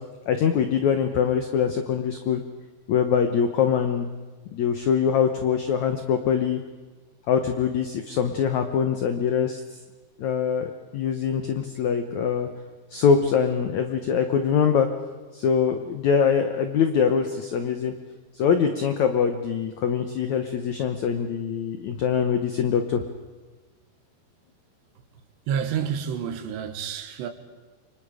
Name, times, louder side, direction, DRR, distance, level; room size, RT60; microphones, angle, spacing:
voice 1, 0.3-2.4 2.9-4.1 4.5-6.6 7.3-9.6 10.2-12.5 12.9-14.9 15.3-17.9 18.4-23.0, left 7 dB, 80° left, 1.6 m, -23 dB
voice 2, 25.5-27.3, right 8 dB, 85° right, 3.6 m, -29 dB
29.0 x 24.5 x 5.0 m
omnidirectional pair, 4.8 m